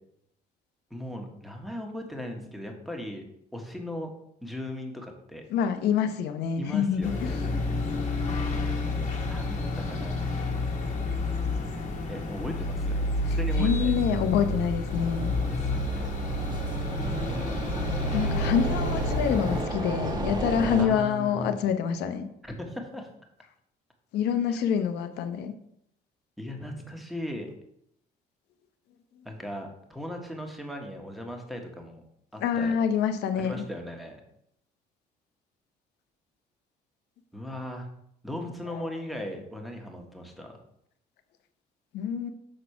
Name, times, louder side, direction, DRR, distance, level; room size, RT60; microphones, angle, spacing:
voice 1, 0.9-3.2 3.5-4.1 4.4-5.4 6.6-7.4 9.3-10.5 12.1-14.2 15.4-16.1 20.8-21.5 22.5-23.1 24.5-24.6 26.4-27.5 29.2-32.0 32.3-32.7 33.3-34.2 37.3-37.9 38.2-40.6, left 1 dB, ahead, 2 dB, 1.4 m, -38 dB
voice 2, 5.5-7.3 13.3-15.3 18.1-22.3 24.1-25.5 32.4-33.7 41.9-42.3, left 8 dB, 80° left, 8 dB, 0.8 m, -26 dB
sound 1, 7.0-19.6, left 2 dB, 45° left, 1.5 m, -29 dB
sound 2, 14.9-20.9, right 2 dB, 25° right, 1.4 m, -33 dB
6.5 x 4.2 x 5.8 m, 0.74 s
cardioid pair, 110°, 17 cm